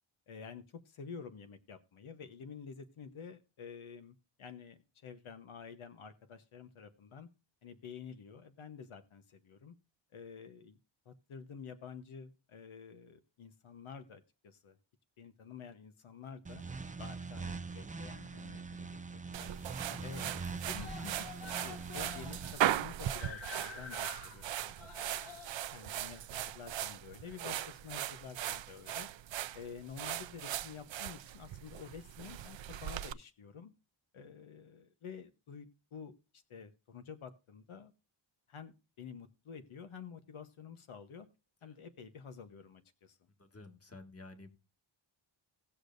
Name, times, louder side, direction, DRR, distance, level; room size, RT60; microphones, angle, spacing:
voice 1, 0.3-7.3 7.6-9.7 10.1-10.8 11.0-14.8 15.2-16.6 17.0-19.5 20.0-21.3 21.6-25.4 25.7-29.1 29.5-33.7 34.1-36.2 36.5-37.9 38.5-41.3 41.6-43.3, left 6 dB, 80° left, 8 dB, 1.1 m, -50 dB
sound 1, 16.5-22.5, right 4 dB, 15° right, 0.5 m, -43 dB
Screaming, 17.8-18.7 19.0-19.1 19.4-19.5 19.8-20.3 20.6-27.5 28.3-28.4, left 5 dB, 65° left, 2.1 m, -50 dB
sound 2, 19.3-33.1, right 12 dB, 65° right, 0.6 m, -39 dB
voice 2, 19.8-20.3 41.6-41.8 43.4-44.5, left 3 dB, 30° left, 6 dB, 1.7 m, -52 dB
18.0 x 6.7 x 2.6 m, 0.30 s
wide cardioid pair, 120°, 48 cm